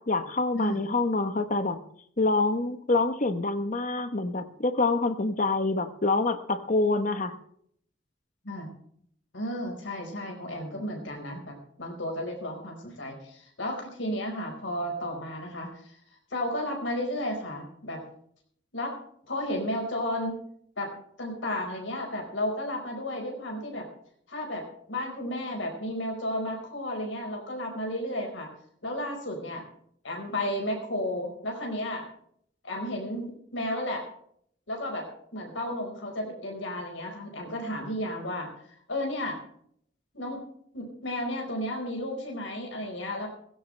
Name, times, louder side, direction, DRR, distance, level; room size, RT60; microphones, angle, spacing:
voice 1, 0.0-1.8 2.2-7.3, left 3 dB, 40° left, 10 dB, 1.1 m, -26 dB
voice 2, 9.3-16.0 16.3-18.0 18.7-18.9 19.3-20.4 20.8-20.9 21.2-23.9 24.3-28.5 28.8-29.6 30.0-32.1 32.6-34.0 34.7-38.5 38.9-39.4 40.1-40.4 40.7-43.3, left 1 dB, 80° left, 1 dB, 4.8 m, -33 dB
17.0 x 16.0 x 3.3 m, 0.65 s
head